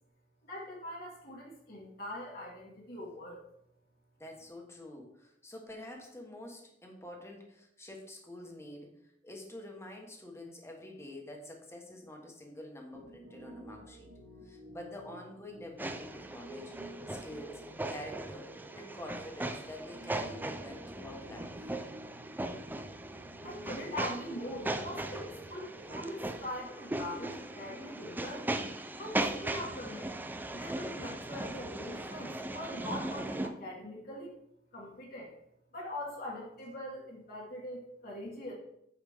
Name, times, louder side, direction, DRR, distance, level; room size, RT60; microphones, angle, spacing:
voice 1, 0.4-3.4 23.4-28.5 29.0-30.1 30.5-34.4 34.7-35.3 35.7-38.5, left 1 dB, 55° left, -4 dB, 1.7 m, -42 dB
voice 2, 4.2-14.1 14.4-16.8 17.1-21.7, left 1 dB, 15° left, 1 dB, 1.3 m, -47 dB
Piano, 12.9-26.6, right 1 dB, 70° right, 1.2 m, -52 dB
sound 1, 15.8-33.5, right 2 dB, 10° right, 0.4 m, -39 dB
8.5 x 5.0 x 3.6 m, 0.78 s
head